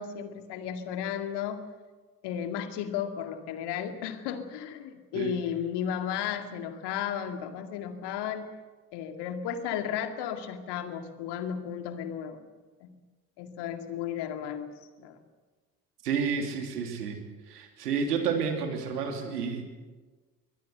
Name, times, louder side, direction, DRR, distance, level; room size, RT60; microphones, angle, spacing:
voice 1, 0.0-1.6 2.2-8.5 8.9-12.4 12.8-12.9 13.4-14.7 15.0-15.2, left 9 dB, 60° left, 7 dB, 2.3 m, -34 dB
voice 2, 16.0-17.2 17.5-19.7, right 6 dB, 75° right, 5 dB, 3.1 m, -30 dB
23.0 x 18.0 x 7.9 m, 1.3 s
figure-of-eight pair, 55°, 47 cm